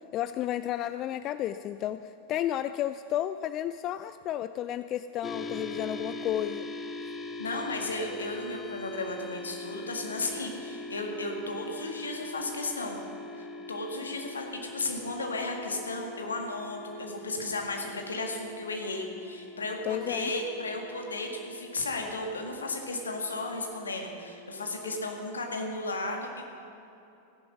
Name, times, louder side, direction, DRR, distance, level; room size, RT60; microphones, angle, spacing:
voice 1, 0.1-6.7 19.9-20.3, left 12 dB, 35° left, 12 dB, 0.3 m, -32 dB
sound 1, 5.2-24.9, left 2 dB, 15° left, 1.0 m, -42 dB
voice 2, 7.4-13.0 13.3-26.4, left 2 dB, 75° left, 2 dB, 1.8 m, -34 dB
15.0 x 10.5 x 6.2 m, 2.9 s
figure-of-eight pair, 90°, 0 cm